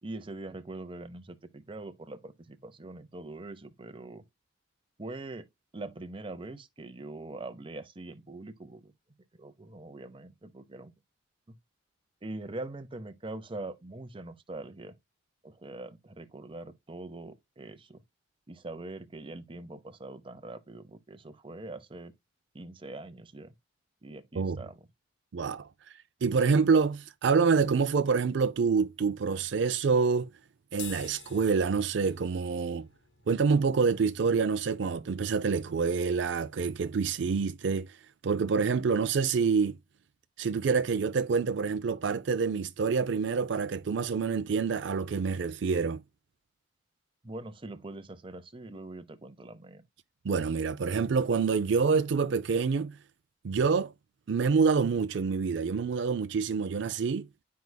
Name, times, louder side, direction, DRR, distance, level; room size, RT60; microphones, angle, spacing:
voice 1, 0.0-4.2 5.0-5.5 5.7-8.9 9.4-10.9 11.5-11.6 12.2-14.9 15.4-18.0 18.5-22.1 22.5-23.5 24.0-24.9 47.2-49.8, right 2 dB, 30° right, 0.7 m, -43 dB
voice 2, 25.3-25.7 26.2-30.3 30.7-32.9 33.3-38.0 38.2-39.8 40.4-46.0 50.2-52.9 53.4-53.9 54.3-57.3, right 5 dB, 70° right, 0.4 m, -27 dB
sound 1, 30.7-37.3, left 7 dB, 75° left, 1.7 m, -51 dB
10.5 x 4.7 x 2.2 m
head